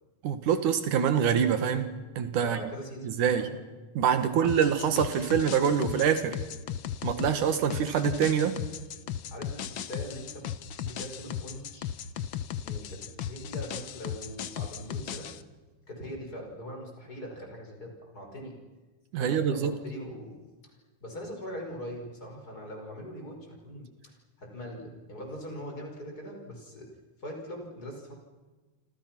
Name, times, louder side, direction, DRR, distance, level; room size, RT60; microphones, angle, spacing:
voice 1, 0.2-1.9 2.2-2.6 3.0-3.5 3.9-6.4 7.0-8.6 19.1-19.7, right 8 dB, 85° right, 9 dB, 3.1 m, -25 dB
voice 2, 2.4-3.5 4.3-4.5 9.3-10.5 10.8-11.9 12.6-15.3 15.9-18.5 19.2-20.4 20.6-20.7 21.0-26.9 27.2-28.1, equal, 30° left, 1 dB, 5.7 m, -41 dB
sound 1, 4.4-15.4, left 9 dB, 80° left, 1.0 m, -36 dB
28.5 x 26.0 x 6.1 m, 1.3 s
omnidirectional pair, 3.5 m